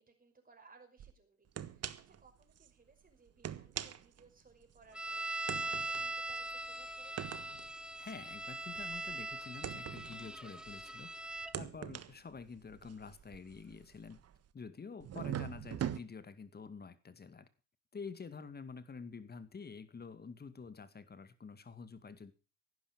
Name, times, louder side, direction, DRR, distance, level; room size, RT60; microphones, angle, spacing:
voice 1, 0.0-7.3, right 4 dB, 20° right, 5.7 m, -63 dB
sound 1, 1.0-1.1 1.6-2.2 2.6-2.7 3.3-4.9 5.5-11.0 11.4-14.5 15.0-16.0, right 10 dB, 40° right, 1.4 m, -43 dB
sound 2, 4.9-11.5, right 2 dB, ahead, 1.2 m, -41 dB
voice 2, 8.0-14.2 14.5-17.5 17.9-22.3, left 5 dB, 25° left, 2.1 m, -48 dB
15.5 x 12.0 x 5.3 m
figure-of-eight pair, 60°, 37 cm